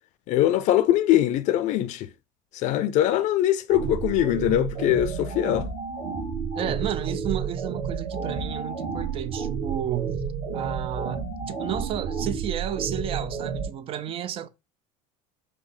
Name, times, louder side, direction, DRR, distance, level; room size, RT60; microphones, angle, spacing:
voice 1, 0.3-2.1 2.5-5.7, left 13 dB, 50° left, 0.5 m, -22 dB
sound 1, 3.7-13.7, right 6 dB, 50° right, 1.3 m, -31 dB
voice 2, 6.6-10.2 10.5-14.5, right 10 dB, 35° right, 0.4 m, -32 dB
4.9 x 2.2 x 4.1 m
supercardioid pair, 125°, 16 cm